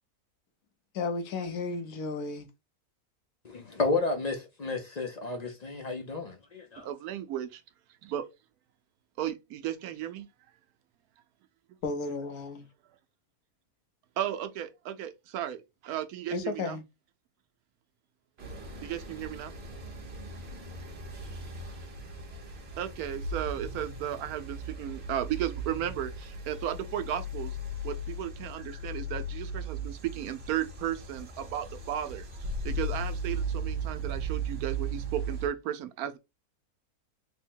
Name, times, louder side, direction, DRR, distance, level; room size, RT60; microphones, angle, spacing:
voice 1, 0.9-2.5 11.8-12.7 16.3-16.8, left 3 dB, 90° left, 1.3 m, -33 dB
voice 2, 3.4-6.9, left 3 dB, 45° left, 0.5 m, -32 dB
voice 3, 6.8-7.6 8.0-8.3 9.2-10.3 14.2-16.8 18.8-19.5 22.8-27.6 27.8-32.3 32.6-36.2, right 11 dB, 85° right, 1.1 m, -35 dB
sound 1, 18.4-35.5, right 2 dB, 50° right, 1.1 m, -37 dB
3.6 x 2.1 x 4.3 m
omnidirectional pair, 1.5 m